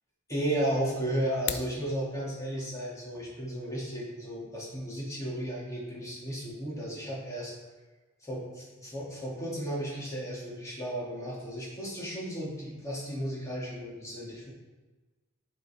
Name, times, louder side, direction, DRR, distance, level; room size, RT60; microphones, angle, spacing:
voice 1, 0.3-7.5 8.2-14.5, right 1 dB, 15° left, -6 dB, 2.4 m, -34 dB
sound 1, 1.2-1.8, left 9 dB, 60° left, 0.5 m, -35 dB
11.0 x 4.5 x 4.4 m, 1.2 s
head